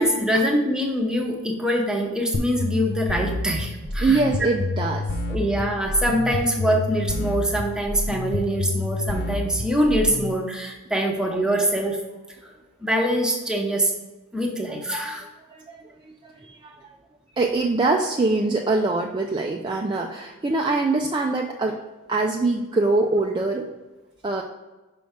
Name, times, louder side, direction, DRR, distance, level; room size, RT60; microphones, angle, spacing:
voice 1, 0.0-4.2 5.3-12.0 12.8-13.9 14.3-15.3, equal, 5° right, 0 dB, 0.8 m, -24 dB
sound 1, 2.3-10.3, left 2 dB, 50° left, 0.6 m, -28 dB
voice 2, 4.0-5.1 15.5-16.9 17.4-21.8 22.1-23.7 24.2-24.4, right 3 dB, 20° right, 1 dB, 0.4 m, -23 dB
6.0 x 5.2 x 3.6 m, 1.1 s
head